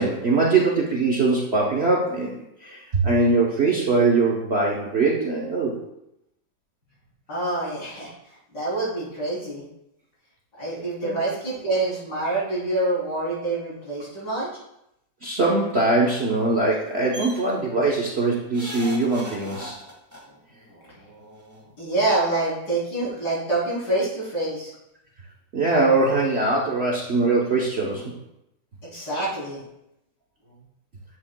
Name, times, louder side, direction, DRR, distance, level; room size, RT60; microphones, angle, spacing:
voice 1, 0.0-2.3 2.6-5.8 11.0-11.2 15.2-19.8 25.5-28.0, right 3 dB, 45° right, -3 dB, 0.9 m, -22 dB
voice 2, 7.3-9.6 10.6-14.5 20.3-20.4 20.7-24.7 28.9-29.6, right 2 dB, 60° left, -7 dB, 3.9 m, -27 dB
sound 1, 17.1-17.4 18.5-20.2 21.4-21.5 21.8-21.9, equal, 10° right, 1.5 m, -37 dB
9.8 x 7.8 x 2.2 m, 0.84 s
omnidirectional pair, 2.0 m